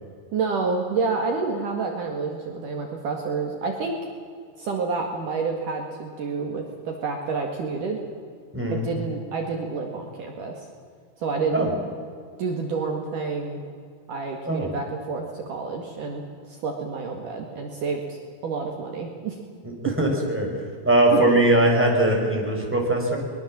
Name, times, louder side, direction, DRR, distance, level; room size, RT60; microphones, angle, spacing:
voice 1, 0.3-3.9 4.6-8.0 8.7-10.7 11.2-11.7 12.4-13.6 14.1-19.4 21.3-21.4, right 4 dB, 60° right, 2 dB, 3.3 m, -29 dB
voice 2, 19.6-20.5 20.8-23.2, right 1 dB, 5° right, 0 dB, 4.7 m, -21 dB
23.0 x 22.0 x 7.6 m, 2.1 s
omnidirectional pair, 4.6 m